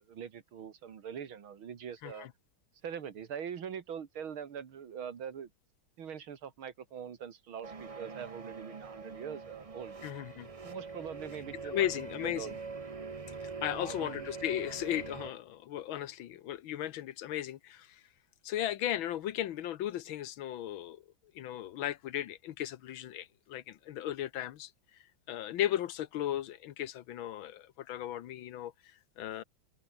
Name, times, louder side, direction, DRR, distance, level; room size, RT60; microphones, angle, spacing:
voice 1, 0.0-2.3 2.8-5.5 6.0-10.0 10.6-11.9 12.2-12.6 13.7-14.3, right 8 dB, 75° right, 2.6 m, -43 dB
sound 1, 7.6-15.3, right 4 dB, 45° right, 0.4 m, -44 dB
voice 2, 10.0-10.5 11.6-12.6 13.4-18.0 18.4-21.0 21.3-24.7 25.3-29.4, left 12 dB, 75° left, 1.7 m, -36 dB
omnidirectional pair, 2.3 m